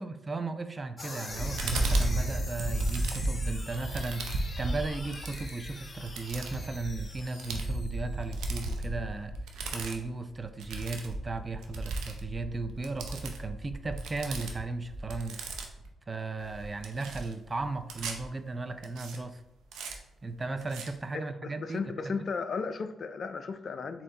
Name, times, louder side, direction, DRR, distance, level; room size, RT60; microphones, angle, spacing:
voice 1, 0.0-9.3 9.7-15.4 16.1-19.4 20.2-22.1, right 3 dB, 30° right, 9 dB, 0.4 m, -36 dB
sound 1, 1.0-8.4, left 2 dB, 35° left, 0.9 m, -44 dB
sound 2, 1.3-15.9 16.4-18.2 18.8-19.2 19.7-19.9 20.6-20.9, right 2 dB, 85° right, 0.6 m, -34 dB
voice 2, 21.1-24.0, left 5 dB, 55° left, 10 dB, 0.4 m, -35 dB
4.2 x 2.9 x 3.7 m, 0.92 s
supercardioid pair, 65°, 0 cm